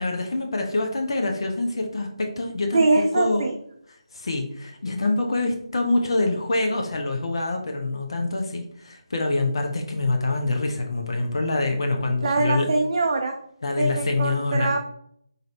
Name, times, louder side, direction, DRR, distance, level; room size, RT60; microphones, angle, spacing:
voice 1, 0.0-2.8 3.1-3.4 4.1-12.7 13.6-14.8, left 2 dB, 60° left, 3 dB, 0.6 m, -25 dB
voice 2, 2.7-3.5 12.2-13.3 13.8-14.8, right 3 dB, 45° right, 2 dB, 0.4 m, -22 dB
4.0 x 2.6 x 3.2 m, 0.68 s
figure-of-eight pair, 155°, 3 cm